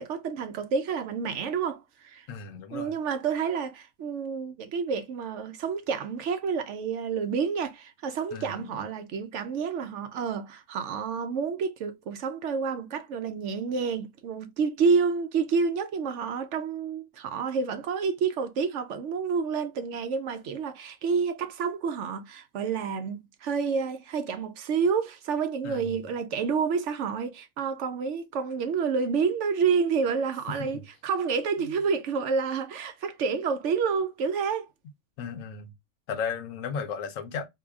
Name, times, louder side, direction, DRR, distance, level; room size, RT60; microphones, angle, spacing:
voice 1, 0.0-2.3 2.7-34.7, right 5 dB, 70° right, 0.9 m, -29 dB
voice 2, 2.3-2.9 8.3-8.8 25.6-26.0 30.6-30.8 31.6-31.7 35.2-35.7 36.1-37.5, left 6 dB, 75° left, 1.0 m, -35 dB
3.9 x 2.8 x 2.3 m
omnidirectional pair, 1.4 m